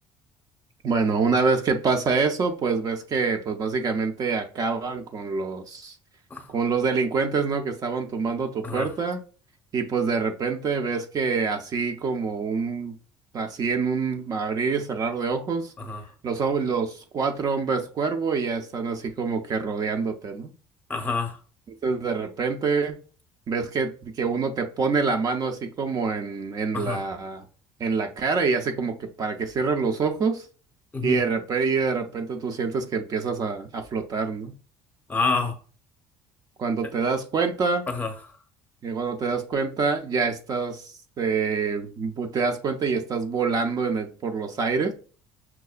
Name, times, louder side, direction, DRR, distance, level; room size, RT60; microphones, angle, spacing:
voice 1, 0.8-5.9 6.5-9.2 9.7-13.0 13.3-15.7 16.2-20.5 21.8-22.9 23.5-27.5 27.8-30.5 31.0-34.5 36.6-37.9 38.8-44.9, right 4 dB, 45° right, 0.5 m, -26 dB
voice 2, 20.9-21.4 26.7-27.0 30.9-31.2 35.1-35.6 37.9-38.1, left 4 dB, 20° left, 0.7 m, -27 dB
5.6 x 2.1 x 2.4 m
supercardioid pair, 100°, 9 cm